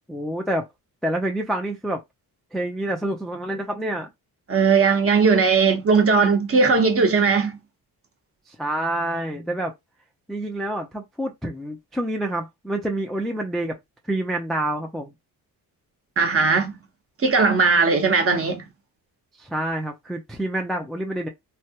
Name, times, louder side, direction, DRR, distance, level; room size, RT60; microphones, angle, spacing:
voice 1, 0.1-0.6 1.0-2.0 2.5-4.1 8.5-9.7 10.3-13.7 14.1-15.1 19.4-21.3, right 1 dB, ahead, 0.4 m, -27 dB
voice 2, 4.5-7.6 16.2-16.7 17.2-18.6, right 4 dB, 35° right, 0.9 m, -18 dB
3.2 x 2.3 x 2.8 m
cardioid pair, 125°, 38 cm